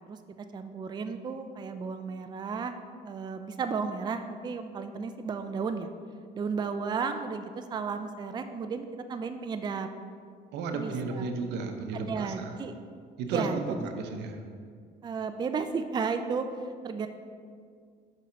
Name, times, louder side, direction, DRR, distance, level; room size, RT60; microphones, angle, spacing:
voice 1, 0.5-2.8 3.0-5.9 6.3-9.9 10.7-11.3 11.9-12.7 13.3-13.9 15.0-17.1, right 5 dB, 25° right, 8 dB, 0.4 m, -33 dB
voice 2, 10.5-12.6 13.2-14.4, right 4 dB, 85° right, 5 dB, 0.8 m, -33 dB
5.5 x 5.3 x 5.1 m, 2.1 s
cardioid pair, 110°, 17 cm